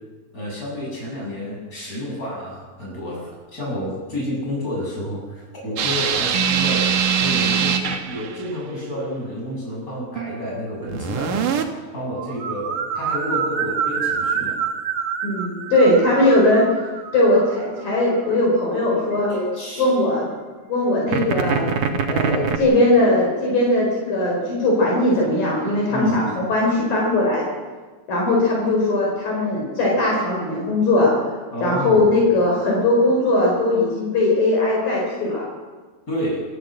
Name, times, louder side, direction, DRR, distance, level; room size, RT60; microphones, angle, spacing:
voice 1, 0.3-6.9 7.2-11.4 11.9-14.6 19.3-19.9 25.9-26.2 31.5-32.1 36.1-36.4, equal, 20° left, -3 dB, 8.1 m, -29 dB
sound 1, 5.8-8.5 10.2-10.5 10.9-11.6 12.2-17.9 21.1-22.6, right 7 dB, 60° right, 2.8 m, -24 dB
voice 2, 15.2-16.6 17.1-19.3 19.8-20.3 20.7-21.7 22.1-27.5 28.1-31.1 31.6-35.5, left 1 dB, 60° left, -2 dB, 6.3 m, -19 dB
27.5 x 14.0 x 7.9 m, 1.4 s
omnidirectional pair, 4.6 m